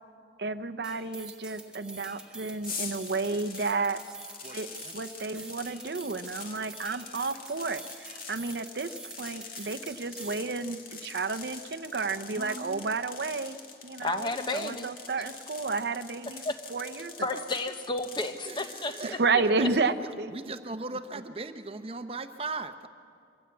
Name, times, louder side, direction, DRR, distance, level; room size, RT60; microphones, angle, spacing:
voice 1, 0.4-4.0 4.5-4.7 4.9-8.9 9.2-13.6 13.8-16.4 16.7-17.4 19.1-20.3, right 4 dB, 65° right, 9 dB, 0.7 m, -31 dB
sound 1, 0.8-10.5, right 3 dB, 5° right, 1.7 m, -47 dB
sound 2, 2.6-19.2, left 5 dB, 55° left, 2.2 m, -44 dB
voice 2, 4.4-5.0 6.4-6.7 12.3-12.9 18.5-19.7 20.0-22.9, right 3 dB, 35° right, 9 dB, 0.8 m, -39 dB
voice 3, 14.0-14.9 16.4-16.6 17.2-19.4, left 2 dB, 25° left, 7 dB, 1.0 m, -32 dB
24.0 x 15.5 x 8.3 m, 2.4 s
head